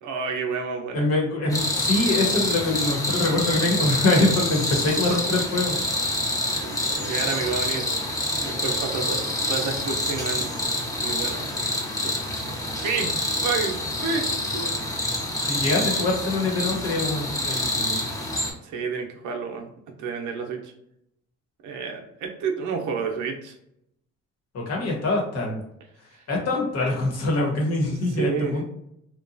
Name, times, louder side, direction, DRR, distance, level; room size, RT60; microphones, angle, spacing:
voice 1, 0.0-1.1 6.5-7.9 8.4-9.2 9.5-10.5 11.0-11.5 11.9-12.1 12.4-12.5 12.8-13.1 13.4-14.8 18.6-19.7 20.0-20.7 21.6-23.5 27.9-28.5, right 5 dB, 80° right, 2 dB, 0.6 m, -30 dB
voice 2, 0.9-5.8 15.4-18.0 24.5-25.6 26.3-28.6, left 2 dB, 55° left, -1 dB, 1.0 m, -24 dB
sound 1, 1.5-18.5, left 1 dB, 10° left, 0.6 m, -27 dB
2.9 x 2.2 x 2.5 m, 0.77 s
cardioid pair, 90°, 30 cm